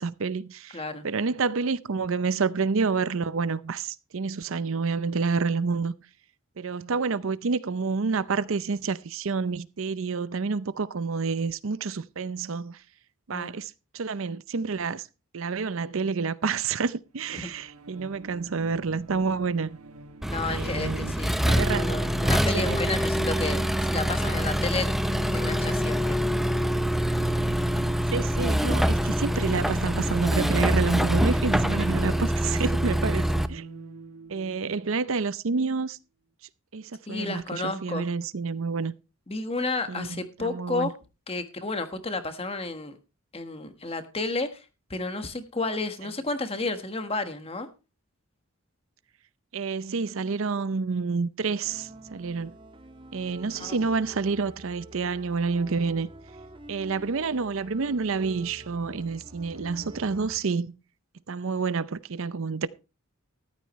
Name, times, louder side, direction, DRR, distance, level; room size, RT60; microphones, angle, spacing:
voice 1, 0.0-5.9 6.6-12.8 13.3-15.1 15.3-19.8 20.5-21.1 21.4-21.9 22.5-22.8 28.1-33.7 34.3-36.0 36.7-38.9 39.9-40.9 49.5-52.6 53.1-56.1 56.7-60.7 61.3-62.7, right 4 dB, 65° right, 0.6 m, -29 dB
voice 2, 0.7-1.0 13.3-13.5 17.3-17.5 20.3-21.4 21.7-24.9 25.3-26.2 37.1-38.0 39.3-40.9 41.3-43.0 43.3-44.6 44.9-47.7 53.5-53.8, left 3 dB, 25° left, 1.4 m, -31 dB
sound 1, 17.1-35.8, right 3 dB, 85° right, 1.2 m, -45 dB
Accelerating revving vroom, 20.2-33.5, equal, ahead, 0.6 m, -25 dB
sound 2, 51.6-60.4, right 1 dB, 25° right, 2.0 m, -46 dB
14.0 x 12.5 x 3.1 m
head